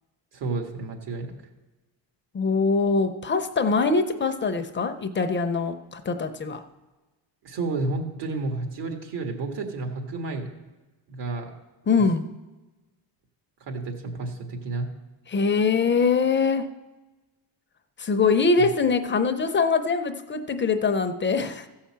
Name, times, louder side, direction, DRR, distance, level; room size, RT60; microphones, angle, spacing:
voice 1, 0.3-1.3 7.4-10.5 11.1-11.5 13.6-14.9 18.6-18.7, right 3 dB, 75° right, 3 dB, 1.8 m, -31 dB
voice 2, 2.3-6.6 11.9-12.3 15.3-16.7 18.0-21.7, left 4 dB, 25° left, 8 dB, 0.6 m, -23 dB
14.5 x 5.7 x 7.3 m, 1.2 s
cardioid pair, 180°, 43 cm